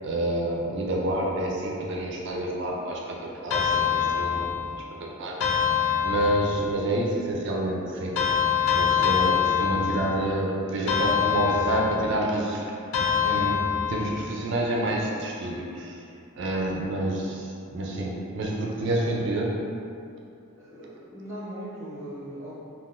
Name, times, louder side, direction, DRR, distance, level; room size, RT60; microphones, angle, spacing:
voice 1, 0.0-4.5 5.0-5.6 6.0-8.1 8.7-13.6 13.9-16.0 16.4-19.6, right 1 dB, 55° right, -2 dB, 0.4 m, -28 dB
sound 1, 3.5-4.8 5.4-6.7 8.1-10.3 10.9-12.2 12.9-14.2, left 8 dB, 75° left, 0.4 m, -25 dB
voice 2, 20.6-22.6, right 1 dB, 15° right, -9 dB, 0.8 m, -39 dB
3.6 x 2.3 x 2.4 m, 2.5 s
head